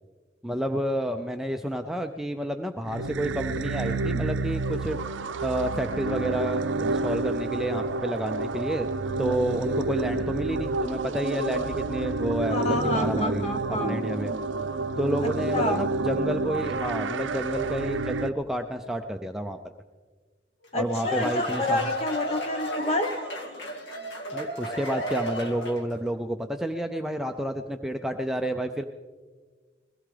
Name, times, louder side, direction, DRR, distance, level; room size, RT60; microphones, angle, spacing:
voice 1, 0.4-5.0 5.4-8.9 9.2-13.4 13.7-14.3 15.0-19.6 20.7-21.8 24.3-28.8, right 1 dB, ahead, 4 dB, 0.4 m, -30 dB
sound 1, 2.9-18.3, right 3 dB, 80° right, 0.5 m, -29 dB
voice 2, 12.5-14.0 15.2-15.8 20.7-23.1, left 1 dB, 35° left, 5 dB, 1.2 m, -28 dB
sound 2, 20.6-26.0, equal, 70° left, 1.7 m, -33 dB
21.5 x 16.5 x 3.3 m, 1.5 s
head